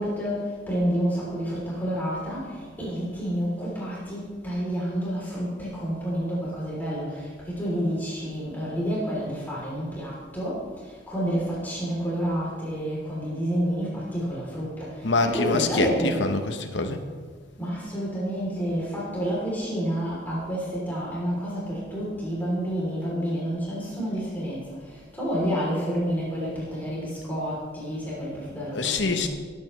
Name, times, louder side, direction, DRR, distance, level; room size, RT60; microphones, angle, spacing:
voice 1, 0.0-2.4 2.8-7.1 7.6-10.6 11.1-14.7 15.2-16.1 17.6-24.6 25.2-29.3, equal, 10° left, -7 dB, 3.3 m, -29 dB
voice 2, 15.0-17.0 28.7-29.3, left 3 dB, 60° left, 6 dB, 1.0 m, -25 dB
17.5 x 8.4 x 3.2 m, 1.5 s
head